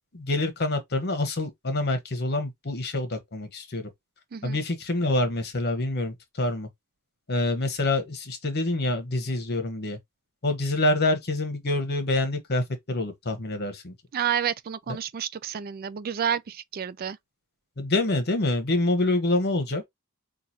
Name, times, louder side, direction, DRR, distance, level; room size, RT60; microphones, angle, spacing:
voice 1, 0.1-3.9 4.4-6.7 7.3-10.0 10.4-13.9 17.8-19.8, left 2 dB, 50° left, 1.3 m, -26 dB
voice 2, 14.1-17.2, right 8 dB, 45° right, 0.4 m, -30 dB
5.9 x 2.5 x 2.9 m
head